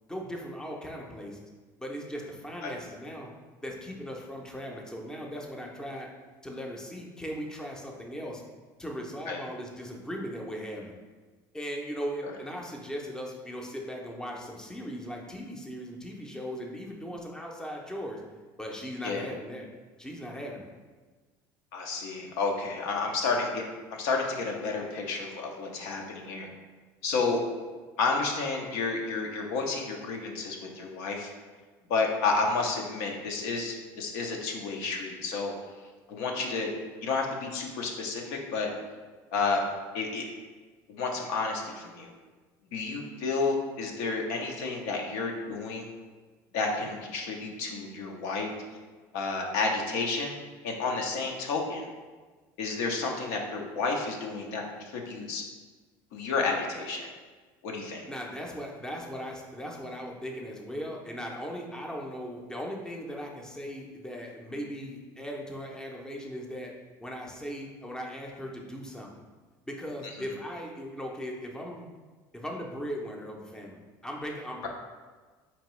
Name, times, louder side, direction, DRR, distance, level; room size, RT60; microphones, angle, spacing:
voice 1, 0.1-1.4 1.8-3.3 3.6-6.1 6.4-8.4 8.8-10.9 11.5-18.2 18.6-19.6 20.0-20.7 58.1-66.7 67.0-69.1 69.7-71.9 72.3-74.7, equal, 5° left, 0 dB, 0.6 m, -38 dB
voice 2, 21.7-23.6 23.9-26.5 27.0-27.4 28.0-31.3 31.9-35.5 36.1-36.7 37.0-38.7 39.3-39.7 39.9-40.2 40.9-42.1 42.7-45.9 46.5-48.5 49.1-50.3 50.6-51.9 52.6-55.4 56.1-57.1 57.6-58.0, left 4 dB, 80° left, 1 dB, 0.7 m, -31 dB
4.3 x 2.9 x 3.1 m, 1.4 s
supercardioid pair, 110°, 9 cm